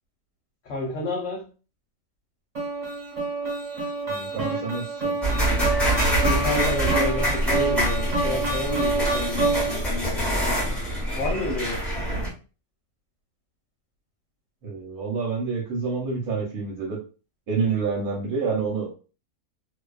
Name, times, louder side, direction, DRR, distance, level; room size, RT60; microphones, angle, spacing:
voice 1, 0.6-1.5 6.2-10.3 11.1-11.8, left 2 dB, 65° left, -1 dB, 0.9 m, -30 dB
sound 1, 2.5-10.0, right 3 dB, 30° right, 0.9 m, -27 dB
voice 2, 4.1-5.1 14.6-17.0 17.5-18.9, right 5 dB, 75° right, -2 dB, 1.2 m, -28 dB
sound 2, 5.2-12.3, right 1 dB, ahead, 0.9 m, -25 dB
2.5 x 2.2 x 2.3 m, 0.35 s
omnidirectional pair, 1.6 m